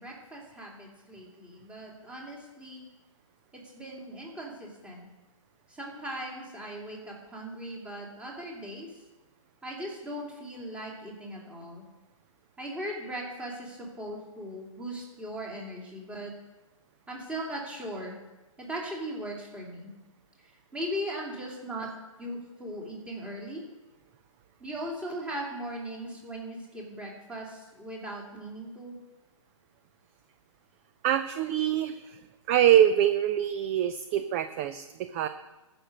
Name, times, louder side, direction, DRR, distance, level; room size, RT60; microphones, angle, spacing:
voice 1, 0.0-2.9 3.5-5.1 5.7-8.9 9.6-11.9 12.6-16.3 17.1-18.2 18.6-19.9 20.7-21.9 22.2-23.6 24.6-29.0, right 1 dB, 5° right, -2 dB, 2.7 m, -38 dB
voice 2, 31.0-32.2 32.5-35.3, right 10 dB, 25° right, 11 dB, 0.5 m, -24 dB
14.0 x 6.1 x 6.5 m, 1.1 s
hypercardioid pair, 140°, 17 cm